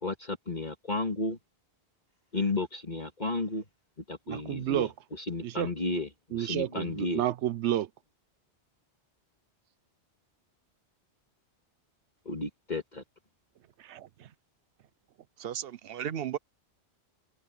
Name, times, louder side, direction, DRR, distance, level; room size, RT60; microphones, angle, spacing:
voice 1, 0.0-1.4 2.3-3.6 4.1-4.9 5.2-7.2 12.3-13.0, left 2 dB, 40° left, 2.2 m, -33 dB
voice 2, 4.3-4.9 5.4-5.7 6.3-7.9 13.8-14.3, right 12 dB, 90° right, 1.0 m, -31 dB
voice 3, 15.4-16.4, right 10 dB, 65° right, 0.9 m, -35 dB
omnidirectional pair, 1.1 m